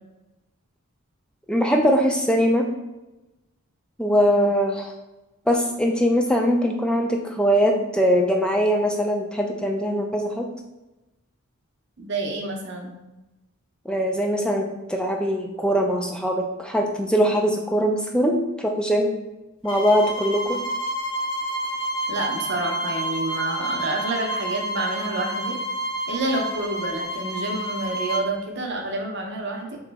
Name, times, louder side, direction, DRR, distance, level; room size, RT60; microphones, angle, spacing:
voice 1, 1.5-2.7 4.0-4.9 5.5-10.5 13.9-19.1 19.6-20.6, equal, 5° left, 2 dB, 0.3 m, -21 dB
voice 2, 12.0-12.9 22.1-25.6 26.1-29.8, right 2 dB, 50° right, 2 dB, 0.6 m, -28 dB
sound 1, 19.6-28.3, right 1 dB, 25° left, 0.9 m, -29 dB
3.7 x 3.0 x 3.4 m, 1.0 s
head